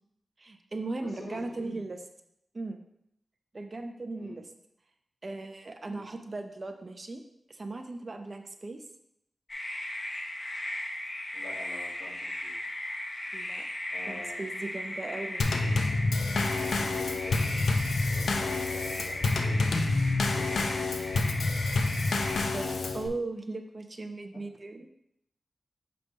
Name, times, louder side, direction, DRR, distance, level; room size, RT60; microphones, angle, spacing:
voice 1, 0.4-2.0 2.5-2.8 3.5-4.4 5.2-7.2 7.5-8.8 13.3-13.7 14.1-15.5 22.5-24.9, right 2 dB, 40° right, 6 dB, 0.6 m, -38 dB
voice 2, 1.0-1.8 4.1-4.4 5.8-6.1 11.3-12.6 13.9-14.5 16.5-17.7 18.1-20.0 20.3-21.4 24.3-24.4, left 1 dB, 65° left, -3 dB, 1.8 m, -47 dB
sound 1, 9.5-22.4, left 1 dB, 40° left, 1.0 m, -37 dB
Drum kit / Snare drum / Bass drum, 15.4-23.1, left 3 dB, 85° left, 0.5 m, -28 dB
6.6 x 3.3 x 5.2 m, 0.78 s
wide cardioid pair, 90°, 0 cm